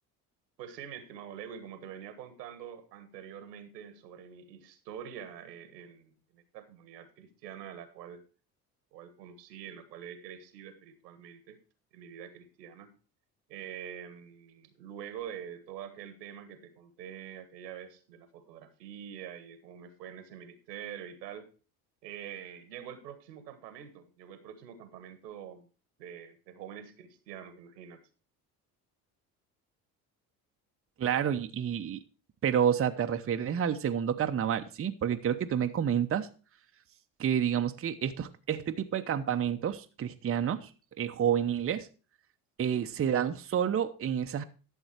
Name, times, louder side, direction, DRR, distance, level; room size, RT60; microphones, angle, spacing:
voice 1, 0.6-8.2 8.9-11.6 11.9-12.9 13.5-21.5 22.0-25.7 26.0-28.0, right 9 dB, 85° right, 11 dB, 1.5 m, -45 dB
voice 2, 31.0-32.0 32.4-36.3 37.2-40.7 41.0-41.9 42.6-44.4, right 9 dB, 30° right, 7 dB, 0.8 m, -29 dB
11.5 x 7.2 x 4.4 m, 0.35 s
hypercardioid pair, 65°, 48 cm